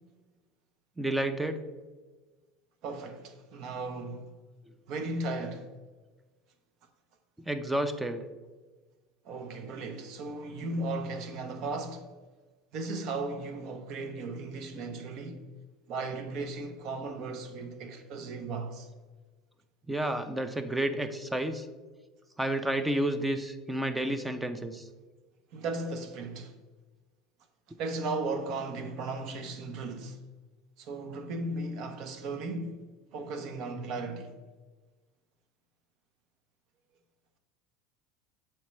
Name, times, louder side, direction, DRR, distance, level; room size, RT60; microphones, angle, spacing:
voice 1, 1.0-1.6 7.5-8.2 19.9-21.7 22.4-24.8, right 1 dB, 10° right, 0.4 m, -30 dB
voice 2, 2.8-4.3 4.9-5.7 9.2-12.1 12.7-15.4 15.9-18.9 25.5-26.5 27.8-30.2 30.8-32.8 33.1-34.3, right 3 dB, 55° right, 0.7 m, -36 dB
7.0 x 4.4 x 3.1 m
supercardioid pair, 110°, 0 cm